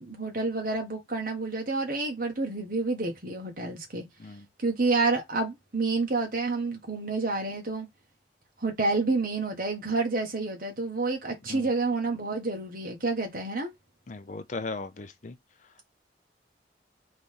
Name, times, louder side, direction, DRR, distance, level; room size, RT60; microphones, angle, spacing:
voice 1, 0.0-4.1 4.6-7.9 8.6-13.7, right 3 dB, 50° right, 1.6 m, -29 dB
voice 2, 14.1-15.4, left 3 dB, 45° left, 0.5 m, -37 dB
4.0 x 3.3 x 3.7 m
head